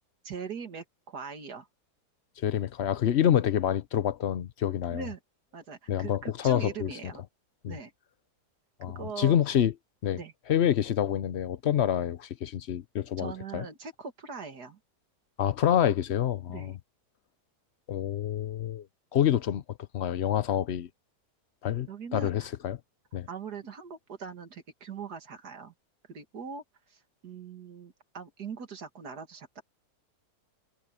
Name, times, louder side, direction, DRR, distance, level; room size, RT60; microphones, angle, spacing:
voice 1, 0.2-1.7 4.9-5.2 5.5-7.2 7.7-7.9 9.0-9.4 10.1-10.3 13.2-14.8 16.5-16.8 21.9-22.5 23.3-25.7 26.1-26.6 26.9-29.6, right 5 dB, 70° right, 2.5 m, -41 dB
voice 2, 2.4-5.1 5.9-6.9 7.6-7.8 8.8-9.7 10.0-10.2 10.5-13.7 15.4-16.8 17.9-18.9 19.1-20.9 21.6-22.8 23.1-23.3, left 10 dB, 55° left, 0.8 m, -27 dB
omnidirectional pair, 1.8 m